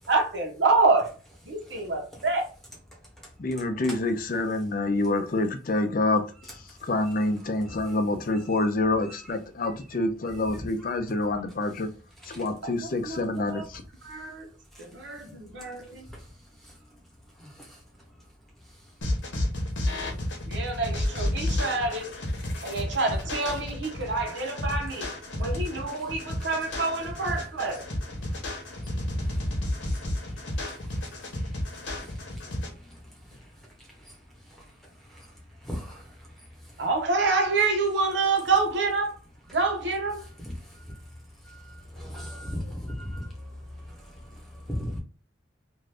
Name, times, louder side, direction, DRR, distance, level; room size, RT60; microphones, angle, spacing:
voice 1, 0.1-1.1 1.5-2.5 13.1-13.6 14.0-14.5 14.8-16.1 20.5-22.1 22.6-25.1 25.4-27.8 36.8-39.2 39.5-40.3, right 3 dB, 65° right, 0.8 m, -27 dB
voice 2, 3.4-11.9 12.2-13.8, left 2 dB, 45° left, 0.5 m, -27 dB
sound 1, 19.0-32.7, left 1 dB, 75° left, 0.9 m, -32 dB
voice 3, 35.6-36.0 41.9-43.3 44.7-45.0, left 1 dB, ahead, 1.0 m, -34 dB
2.6 x 2.4 x 3.3 m
head